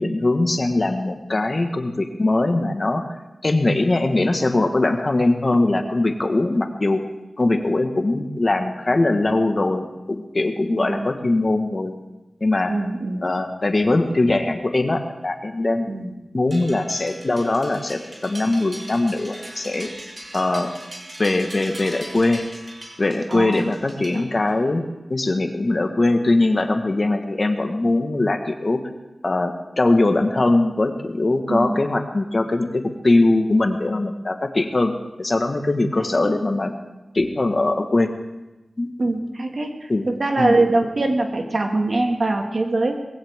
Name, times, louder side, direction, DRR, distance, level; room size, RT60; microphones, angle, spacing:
voice 1, 0.0-3.0 3.4-7.0 7.4-11.9 12.4-12.7 13.2-15.9 16.3-19.9 20.3-20.7 21.2-22.4 23.0-24.8 25.1-28.8 29.2-34.9 35.2-36.7 37.1-38.1 38.8-38.9 39.9-40.1 40.4-40.6, left 2 dB, 45° left, 5 dB, 1.6 m, -21 dB
voice 2, 10.8-11.1 12.7-13.3 15.9-16.1 23.3-23.7 24.1-24.3 31.5-31.8 36.0-36.3 39.0-43.0, right 2 dB, 60° right, 3 dB, 2.0 m, -23 dB
sound 1, 16.5-24.7, right 1 dB, 35° right, 3.4 m, -40 dB
20.5 x 15.5 x 3.7 m, 1.0 s
cardioid pair, 55°, 0 cm